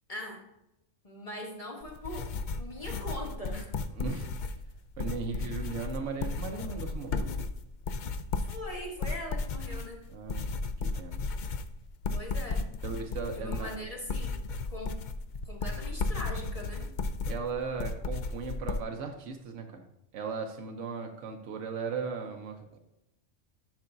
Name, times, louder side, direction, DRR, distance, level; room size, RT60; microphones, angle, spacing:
voice 1, 0.1-0.4 1.0-2.3 2.6-3.7 5.3-5.6 8.5-10.0 12.1-12.7 13.4-14.9 15.5-16.9, left 1 dB, 30° left, 0 dB, 1.2 m, -41 dB
sound 1, 1.8-18.8, left 3 dB, 60° left, 0.5 m, -34 dB
voice 2, 3.9-4.3 5.0-7.3 10.1-10.5 10.8-11.2 12.8-13.7 17.3-19.8 20.1-22.8, right 5 dB, 80° right, 3 dB, 1.1 m, -37 dB
10.5 x 5.7 x 2.6 m, 0.88 s
omnidirectional pair, 1.3 m